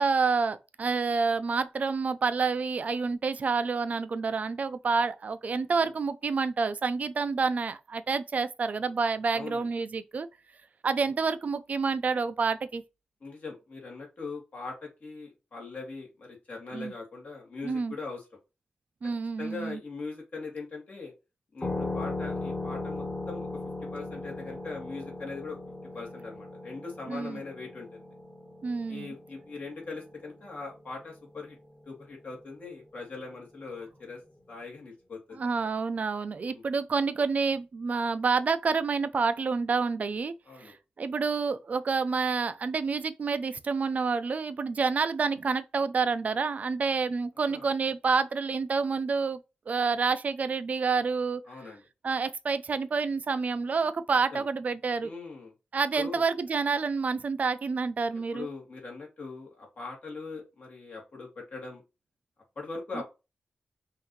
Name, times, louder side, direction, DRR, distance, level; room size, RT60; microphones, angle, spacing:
voice 1, 0.0-10.3 10.8-12.8 16.7-16.9 17.6-17.9 19.0-19.8 27.1-27.4 28.6-29.1 35.4-40.3 40.6-49.4 49.7-51.4 52.0-55.1 55.7-58.5 62.9-63.0, right 4 dB, 50° right, 0.5 m, -28 dB
voice 2, 9.3-9.7 11.0-11.1 13.2-18.2 19.4-21.1 21.5-23.5 23.9-25.6 25.9-28.1 28.9-31.6 31.9-34.2 34.5-35.7 36.5-36.6 40.5-40.7 47.4-47.7 51.5-51.8 54.3-54.5 55.0-55.5 55.9-56.2 58.3-61.8 62.6-63.0, left 3 dB, 50° left, 2.1 m, -41 dB
sound 1, 21.6-30.8, left 2 dB, 25° left, 1.6 m, -38 dB
5.7 x 2.7 x 3.1 m
wide cardioid pair, 135°, 3 cm